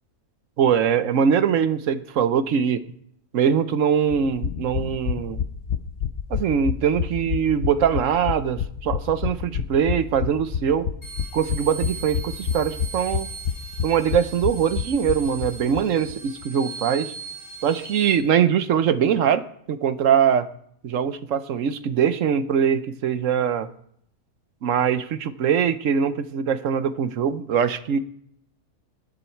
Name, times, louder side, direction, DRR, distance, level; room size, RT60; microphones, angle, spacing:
voice 1, 0.6-2.8 3.3-5.4 6.3-10.9 11.3-13.3 13.8-17.1 17.6-20.5 20.8-23.7 24.6-28.0, right 8 dB, 65° right, 13 dB, 1.1 m, -22 dB
sound 1, 4.1-15.8 16.1-16.2 16.4-16.5, left 8 dB, 60° left, 0.9 m, -28 dB
sound 2, 11.0-18.2, right 5 dB, 35° left, 3.9 m, -39 dB
18.5 x 10.0 x 4.5 m, 0.69 s
omnidirectional pair, 1.5 m